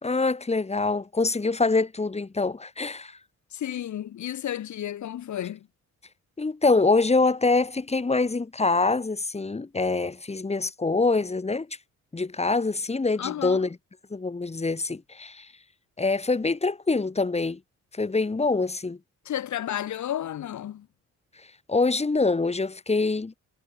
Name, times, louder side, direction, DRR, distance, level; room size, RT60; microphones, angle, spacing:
voice 1, 0.0-3.2 6.4-11.8 12.1-13.7 14.1-15.5 16.0-17.6 17.9-19.0 21.7-23.4, left 3 dB, 20° left, 2.7 m, -25 dB
voice 2, 3.5-5.7 13.2-13.7 19.2-20.9, left 11 dB, 70° left, 7.8 m, -32 dB
cardioid pair, 90°, 30 cm